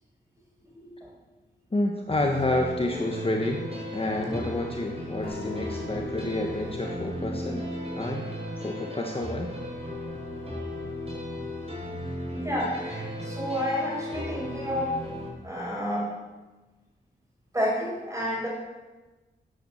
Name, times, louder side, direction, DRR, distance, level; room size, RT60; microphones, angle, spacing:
voice 1, 0.7-1.1 4.1-4.5 12.3-15.0 15.4-16.2 17.5-18.5, equal, 15° right, -3 dB, 6.2 m, -30 dB
voice 2, 1.7-3.7 3.9-7.6 8.0-8.3 8.6-9.5, left 2 dB, 30° left, 1 dB, 1.4 m, -29 dB
sound 1, 2.1-15.3, left 1 dB, 30° right, 5.8 m, -35 dB
sound 2, 5.2-8.8, right 1 dB, 50° left, 4.5 m, -44 dB
13.0 x 9.5 x 7.2 m, 1.2 s
wide cardioid pair, 105°, 19 cm